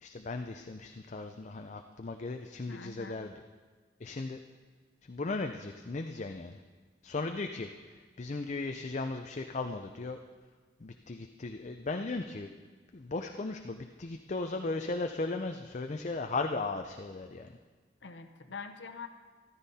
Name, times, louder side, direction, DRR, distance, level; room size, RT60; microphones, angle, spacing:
voice 1, 0.0-3.3 4.0-4.4 5.1-6.6 7.0-10.2 10.8-12.5 12.9-17.5, left 3 dB, 40° left, 6 dB, 0.5 m, -37 dB
voice 2, 2.7-3.2 18.0-19.1, left 5 dB, 65° left, 6 dB, 0.9 m, -44 dB
13.5 x 13.0 x 4.2 m, 1.4 s
head